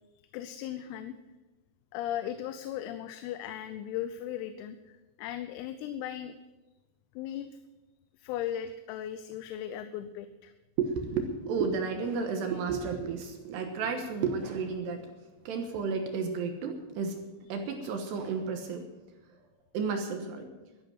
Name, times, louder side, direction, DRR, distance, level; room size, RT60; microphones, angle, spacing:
voice 1, 0.3-1.1 1.9-6.4 7.2-7.6 8.2-10.5, left 11 dB, 85° left, 10 dB, 3.4 m, -37 dB
voice 2, 10.8-15.1 15.5-17.2 17.5-18.9 19.7-20.5, right 5 dB, 70° right, 5 dB, 2.8 m, -32 dB
13.5 x 10.5 x 7.7 m, 1.1 s
omnidirectional pair, 6.0 m